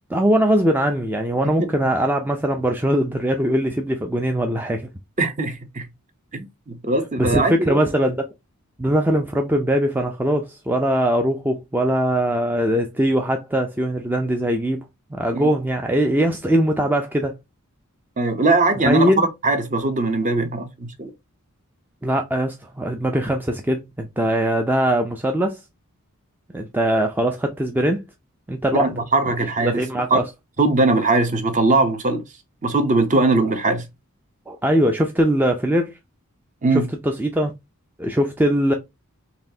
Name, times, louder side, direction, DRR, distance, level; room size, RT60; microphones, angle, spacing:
voice 1, 0.1-4.9 7.2-8.2 8.8-14.9 15.1-17.3 18.8-19.3 22.0-25.6 26.5-28.0 28.5-28.9 29.6-30.2 34.5-35.9 36.7-37.5 38.0-38.7, right 1 dB, 10° right, 0.4 m, -21 dB
voice 2, 5.2-5.9 6.3-7.8 15.3-15.5 18.2-21.1 28.7-29.8 30.1-30.2 30.6-32.2 32.6-33.9 36.6-36.9, right 2 dB, 35° right, 0.8 m, -20 dB
4.1 x 3.2 x 2.7 m
head